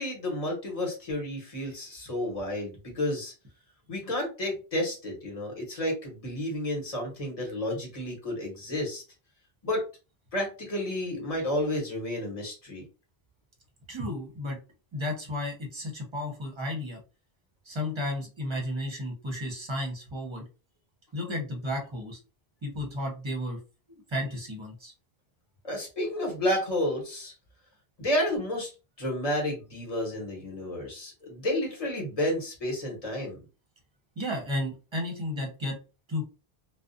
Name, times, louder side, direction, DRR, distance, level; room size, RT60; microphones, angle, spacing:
voice 1, 0.0-3.3 3.9-9.0 9.6-9.8 10.3-12.8 25.6-27.3 28.0-28.7 29.0-33.4, left 1 dB, 35° left, -1 dB, 1.1 m, -31 dB
voice 2, 13.9-14.6 14.9-17.0 17.6-20.4 21.1-22.2 22.6-23.6 23.9-24.9 34.2-35.8 36.1-36.3, left 1 dB, 30° right, 0 dB, 0.7 m, -33 dB
2.4 x 2.1 x 2.5 m, 0.32 s
omnidirectional pair, 1.1 m